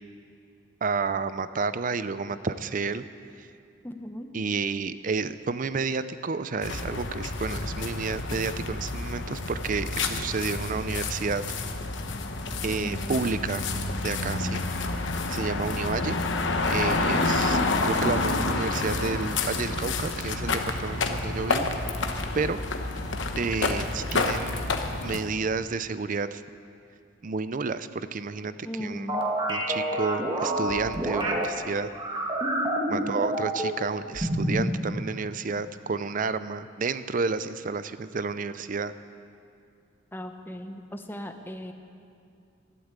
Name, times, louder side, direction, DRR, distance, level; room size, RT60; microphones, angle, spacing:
voice 1, 0.8-3.0 3.4-3.5 4.3-11.4 12.6-13.7 14.0-14.7 15.3-16.2 16.7-21.7 22.3-22.6 23.4-24.7 25.0-26.4 27.2-28.5 28.8-29.1 29.5-31.9 32.9-38.9, right 4 dB, 45° right, 13 dB, 0.5 m, -30 dB
voice 2, 3.8-4.3 12.7-13.3 17.0-17.3 28.6-29.3 32.9-33.3 40.1-41.7, equal, 10° left, 5 dB, 0.8 m, -37 dB
sound 1, 6.6-25.2, left 3 dB, 65° left, 1.0 m, -29 dB
sound 2, 29.1-31.4 31.9-33.8 34.1-34.7, right 1 dB, 25° right, 1.5 m, -28 dB
12.5 x 11.5 x 8.2 m, 2.4 s
head